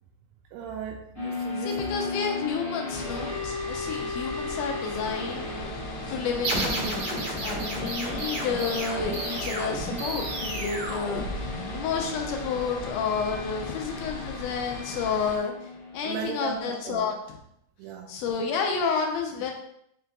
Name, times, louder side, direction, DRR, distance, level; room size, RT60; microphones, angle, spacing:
voice 1, 0.5-1.8 16.0-17.1 17.8-18.1, right 7 dB, 85° right, 1 dB, 2.1 m, -36 dB
sound 1, 1.1-16.9, left 3 dB, 30° left, 0.6 m, -37 dB
voice 2, 1.6-5.5 6.1-15.5 15.9-17.4 18.1-19.5, left 5 dB, 90° left, 2 dB, 2.2 m, -30 dB
sound 2, 2.9-15.4, left 1 dB, 70° left, 1.8 m, -39 dB
sound 3, 6.4-11.9, right 2 dB, 70° right, 0.9 m, -32 dB
5.4 x 2.3 x 3.8 m, 0.74 s
omnidirectional pair, 3.6 m